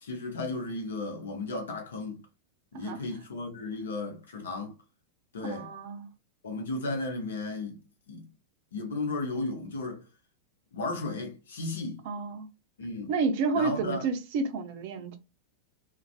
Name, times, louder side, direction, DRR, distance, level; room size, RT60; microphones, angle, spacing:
voice 1, 0.0-2.2 2.7-4.7 5.3-5.7 6.4-7.8 8.1-8.3 8.7-10.1 10.7-12.0 12.8-13.1 13.5-14.0, left 2 dB, 65° left, 0.8 m, -34 dB
voice 2, 5.4-6.1 12.1-12.5 13.1-15.2, right 4 dB, 50° right, 0.5 m, -30 dB
2.5 x 2.2 x 2.3 m
figure-of-eight pair, 90°, 0 cm